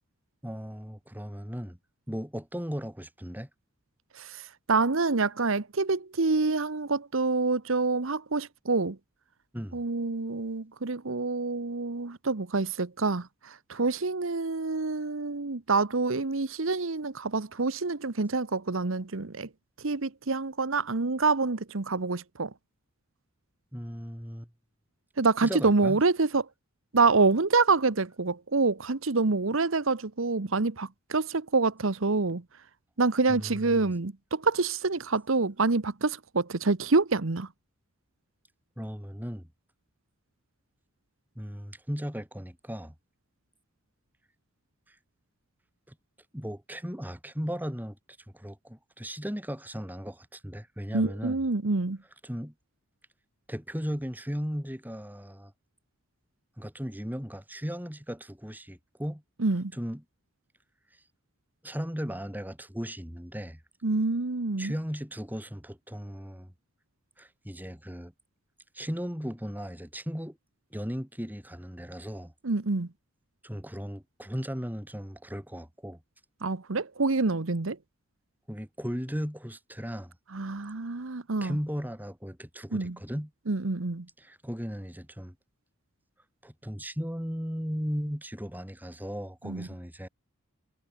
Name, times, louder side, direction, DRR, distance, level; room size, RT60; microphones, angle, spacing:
voice 1, 0.4-1.8 2.1-3.5 9.5-9.8 23.7-24.5 25.4-26.0 33.3-33.8 38.8-39.5 41.4-42.9 44.9-45.0 45.9-46.0 46.3-48.0 48.3-51.4 52.2-52.5 53.5-55.5 56.6-59.2 59.7-60.0 61.6-63.6 64.6-66.5 67.2-68.1 68.7-70.4 70.7-72.3 73.4-76.0 78.5-80.1 81.4-83.3 84.2-85.4 86.4-90.1, equal, 10° right, 5.5 m, -36 dB
voice 2, 4.1-9.0 9.7-19.5 19.8-22.5 25.2-26.5 26.9-32.4 33.0-37.5 50.9-52.0 59.4-59.7 63.8-64.7 72.4-72.9 76.4-77.8 80.3-81.6 82.7-83.0 83.5-84.1 89.4-89.7, right 3 dB, 65° right, 1.0 m, -27 dB
head